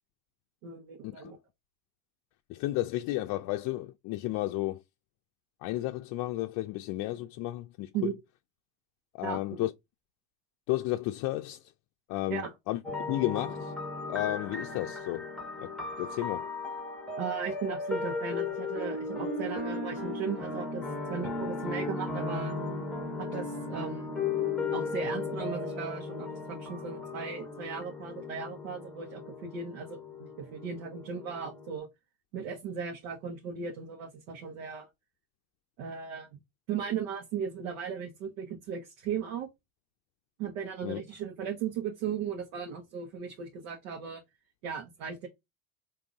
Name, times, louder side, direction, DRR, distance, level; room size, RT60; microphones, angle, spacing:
voice 1, 0.6-1.4 7.9-8.1 9.2-9.7 12.3-12.5 17.2-22.5 23.2-24.1 24.7-31.9 32.3-34.9 35.8-36.4 36.7-39.5 40.4-44.2 44.6-45.3, right 6 dB, 75° right, 1.2 m, -37 dB
voice 2, 2.5-4.8 5.6-7.9 9.1-9.7 10.7-11.6 12.1-12.8 13.1-13.7 14.1-15.3 15.6-16.5 40.8-41.0, left 16 dB, 55° left, 0.5 m, -33 dB
sound 1, 12.8-31.8, left 3 dB, ahead, 0.9 m, -36 dB
3.8 x 2.7 x 3.5 m
hypercardioid pair, 90°, 41 cm